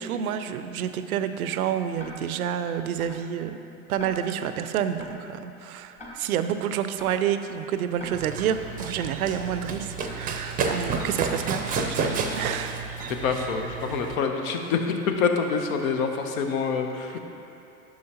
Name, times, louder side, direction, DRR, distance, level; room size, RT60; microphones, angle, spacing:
voice 1, 0.0-3.6 3.9-12.8, right 9 dB, 80° right, 10 dB, 0.5 m, -29 dB
Tick-tock, 2.0-2.1 3.0-3.1 4.0-4.1 5.0-5.1 6.0-6.1 7.0-7.1 8.0-8.1 9.0-9.1 10.0-10.1 11.0-11.1 12.0-12.1 13.0-13.1, left 2 dB, 15° left, 1.3 m, -43 dB
Run, 8.1-14.2, right 4 dB, 20° right, 0.6 m, -31 dB
voice 2, 13.1-17.2, left 5 dB, 70° left, 4 dB, 0.9 m, -26 dB
9.4 x 6.3 x 2.9 m, 2.8 s
hypercardioid pair, 95°, 43 cm